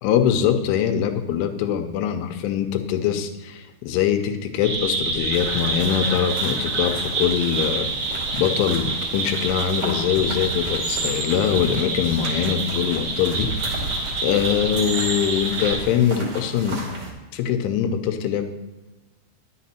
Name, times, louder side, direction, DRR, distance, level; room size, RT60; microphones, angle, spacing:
voice 1, 0.0-13.9 14.2-16.8 17.3-18.4, left 9 dB, 80° left, 7 dB, 3.0 m, -23 dB
sound 1, 4.6-15.8, right 3 dB, 60° right, 1.8 m, -27 dB
sound 2, 5.3-17.1, right 2 dB, 45° right, 2.5 m, -35 dB
11.0 x 6.7 x 4.2 m, 1.2 s
omnidirectional pair, 5.7 m